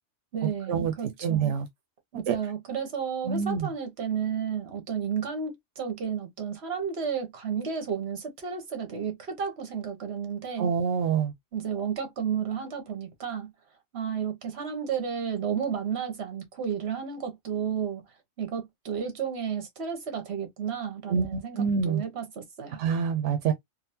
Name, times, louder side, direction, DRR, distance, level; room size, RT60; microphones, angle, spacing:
voice 1, 0.3-1.6 2.1-10.7 11.5-13.5 13.9-18.0 18.4-22.8, right 7 dB, 65° right, 1.3 m, -32 dB
voice 2, 1.2-1.7 2.3-2.4 3.3-3.7 10.6-11.3 21.1-22.0 22.8-23.5, right 6 dB, 85° right, 0.9 m, -26 dB
3.8 x 2.1 x 2.7 m
omnidirectional pair, 1.2 m